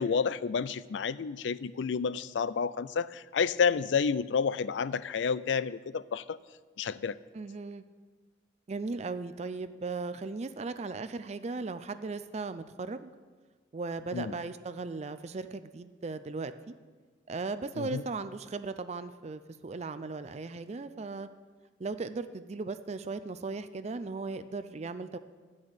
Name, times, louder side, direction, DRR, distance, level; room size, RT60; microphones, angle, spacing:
voice 1, 0.0-6.4 6.8-7.2 14.1-14.3 17.8-18.0, left 6 dB, 75° left, 17 dB, 0.4 m, -30 dB
voice 2, 7.3-7.8 8.7-13.1 13.7-16.7 17.3-21.3 21.8-25.2, right 3 dB, 35° right, 11 dB, 0.4 m, -37 dB
12.0 x 6.4 x 8.8 m, 1.4 s
head